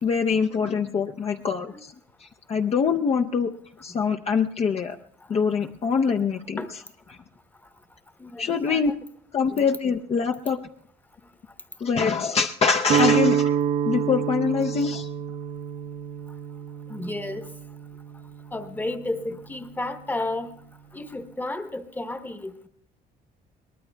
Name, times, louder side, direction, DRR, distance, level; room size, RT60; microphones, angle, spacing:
voice 1, 0.0-1.9 2.2-3.5 3.8-5.0 5.3-6.6 8.4-8.9 9.3-10.6 11.8-13.6 13.9-15.1, left 5 dB, 40° left, 4 dB, 0.6 m, -24 dB
voice 2, 8.2-8.9 9.5-9.6 16.9-17.5 18.5-20.5 20.9-22.7, left 2 dB, 10° left, 9 dB, 0.9 m, -32 dB
Guitar, 12.8-18.9, right 8 dB, 70° right, 0.8 m, -27 dB
22.5 x 19.0 x 2.3 m, 0.67 s
cardioid pair, 110°, 17 cm